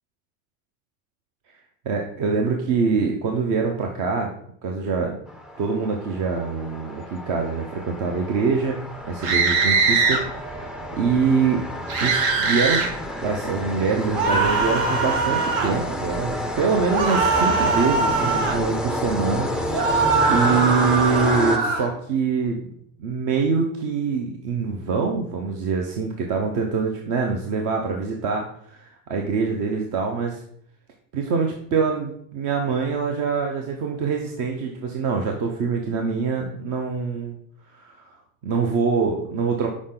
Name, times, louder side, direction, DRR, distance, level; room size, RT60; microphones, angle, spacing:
voice 1, 1.8-4.3 4.6-5.2 5.6-8.8 9.1-10.7 11.0-11.6 12.0-12.9 13.2-19.5 20.3-22.6 23.0-30.4 31.1-37.4 37.7-38.1 38.4-39.7, right 5 dB, 50° right, 2 dB, 0.9 m, -24 dB
sound 1, 5.3-22.1, equal, ahead, 0.3 m, -30 dB
sound 2, 9.2-10.2 11.9-12.9 14.1-15.7 16.9-18.6 19.7-21.9, right 4 dB, 75° right, 1.4 m, -21 dB
6.2 x 4.9 x 3.8 m, 0.68 s
supercardioid pair, 125°, 39 cm